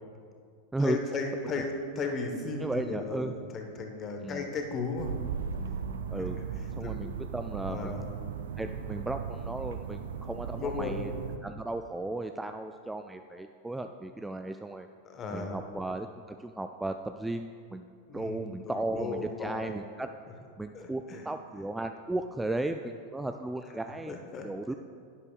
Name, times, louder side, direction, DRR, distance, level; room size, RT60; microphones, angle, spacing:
voice 1, 0.8-5.1 6.8-6.9 7.6-8.0 10.6-11.0 15.0-15.6 18.1-19.7 20.7-21.3 24.1-24.5, left 4 dB, 25° left, 4 dB, 1.2 m, -35 dB
voice 2, 2.6-3.3 4.2-4.5 6.1-6.4 6.8-7.9 8.6-11.1 11.4-14.9 15.3-20.1 20.6-24.2 24.4-24.7, right 2 dB, 5° right, 7 dB, 0.3 m, -35 dB
sound 1, 5.0-11.4, right 6 dB, 65° right, 0.5 m, -37 dB
11.5 x 10.5 x 2.4 m, 2.2 s
figure-of-eight pair, 90°, 0 cm